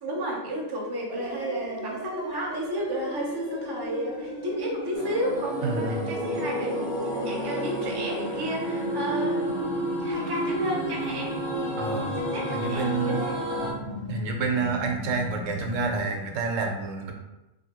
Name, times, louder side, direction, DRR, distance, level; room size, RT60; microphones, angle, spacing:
voice 1, 0.0-9.6 10.0-13.4, right 1 dB, 35° right, -2 dB, 0.4 m, -32 dB
sound 1, 1.1-16.0, left 1 dB, 60° left, 0.8 m, -36 dB
sound 2, 4.9-13.7, right 1 dB, 75° left, 1.0 m, -31 dB
voice 2, 5.6-6.1 11.8-12.2 12.5-13.3 14.1-17.1, right 4 dB, 90° right, 2 dB, 0.9 m, -28 dB
2.7 x 2.6 x 2.8 m, 0.97 s
omnidirectional pair, 1.3 m